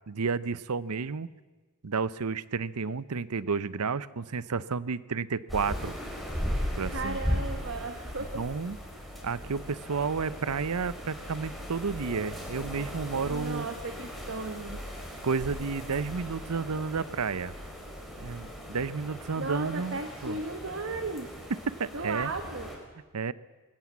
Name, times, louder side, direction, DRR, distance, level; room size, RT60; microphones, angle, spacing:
voice 1, 0.1-1.3 1.8-5.9 6.8-7.4 8.3-8.8 9.2-13.7 15.2-17.5 18.2-20.4 21.8-22.3 23.1-23.3, right 5 dB, 90° right, 17 dB, 0.7 m, -31 dB
sound 1, 5.5-22.8, equal, ahead, 3.9 m, -38 dB
sound 2, 5.7-18.6, equal, 40° right, 6.1 m, -47 dB
voice 2, 6.8-8.4 13.2-14.8 19.4-21.3 21.9-22.7, right 3 dB, 60° right, 6 dB, 1.4 m, -35 dB
22.0 x 17.5 x 7.4 m, 1.3 s
head